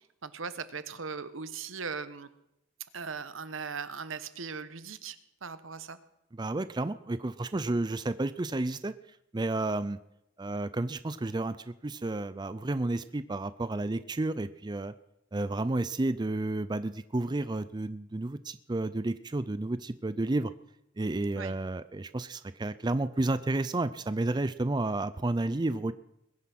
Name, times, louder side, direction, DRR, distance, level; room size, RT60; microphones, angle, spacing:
voice 1, 0.2-2.3 2.9-5.2 5.4-6.0 21.4-21.5, right 5 dB, 80° right, 13 dB, 1.1 m, -39 dB
voice 2, 6.3-8.9 9.3-10.0 10.4-14.9 15.3-20.5 21.0-25.9, right 2 dB, 20° right, 14 dB, 0.4 m, -31 dB
21.5 x 9.6 x 6.0 m, 0.82 s
head